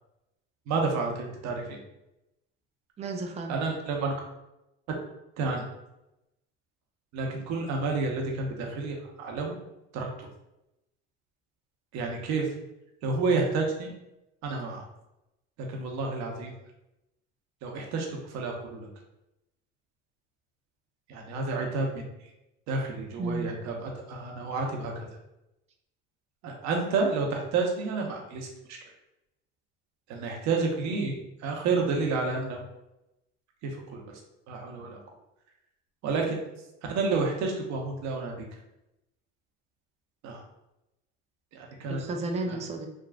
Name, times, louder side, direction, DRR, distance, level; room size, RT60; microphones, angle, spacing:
voice 1, 0.7-1.8 3.5-4.1 5.4-5.7 7.1-9.5 9.9-10.3 11.9-12.5 13.0-13.9 14.4-14.8 15.6-16.5 17.6-18.9 21.1-22.0 22.7-25.1 26.4-28.9 30.1-31.1 31.4-32.6 33.6-34.2 34.5-35.0 36.0-36.4 36.9-38.5 40.2-40.4 41.5-42.0 42.5-42.6, right 4 dB, 60° right, 1 dB, 0.8 m, -30 dB
voice 2, 3.0-3.5 23.2-23.6 41.9-42.9, right 2 dB, 20° right, 4 dB, 0.4 m, -33 dB
3.5 x 2.3 x 2.3 m, 0.90 s
supercardioid pair, 95°, 31 cm